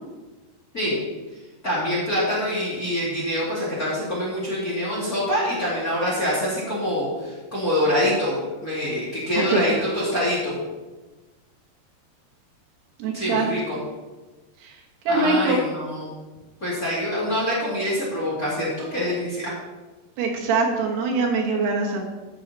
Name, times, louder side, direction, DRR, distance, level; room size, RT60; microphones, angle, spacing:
voice 1, 1.6-10.6 13.1-13.8 15.1-16.1 16.6-19.5, left 1 dB, 25° left, -7 dB, 2.4 m, -25 dB
voice 2, 9.4-9.9 13.0-13.5 14.6-14.8 15.1-15.6 20.2-22.0, right 3 dB, 75° right, 0 dB, 3.4 m, -23 dB
12.0 x 7.5 x 4.2 m, 1.2 s
omnidirectional pair, 4.8 m